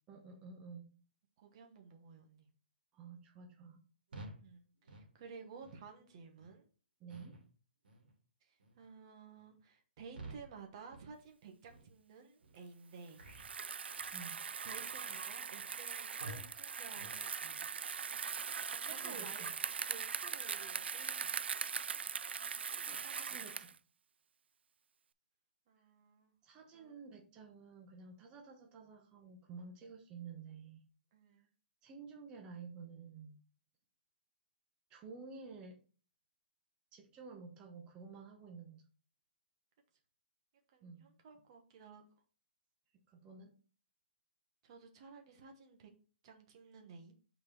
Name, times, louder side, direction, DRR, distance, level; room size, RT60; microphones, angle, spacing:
voice 1, 0.1-0.9 2.9-3.8 7.0-7.4 14.1-14.4 18.8-19.5 22.8-23.7 26.4-30.8 31.8-33.4 34.9-35.8 36.9-38.8 40.8-41.1 43.1-43.5, right 5 dB, 15° right, 2 dB, 0.9 m, -52 dB
voice 2, 1.4-2.5 4.4-6.7 8.4-13.2 14.6-17.7 18.7-19.4 19.9-21.3 23.0-23.4 25.7-26.3 26.7-27.0 31.1-31.5 40.7-42.0 44.6-45.9 46.2-47.2, right 5 dB, 30° right, 3 dB, 1.2 m, -54 dB
sound 1, 4.1-4.4 4.8-5.1 5.6-5.8 6.4-6.5 7.1-7.5 7.8-8.1 8.6-8.9 9.3-9.6 10.1-10.6 10.9-11.2 11.6-11.8 12.4-12.6 13.1-13.5 13.9-14.2 14.7-14.9 15.4-15.6 16.2-16.5 16.9-17.2, right 2 dB, 65° right, 2.5 m, -51 dB
Bicycle, 13.3-23.8, right 6 dB, 90° right, 0.4 m, -41 dB
5.6 x 4.4 x 4.5 m, 0.38 s
hypercardioid pair, 175°, 6 cm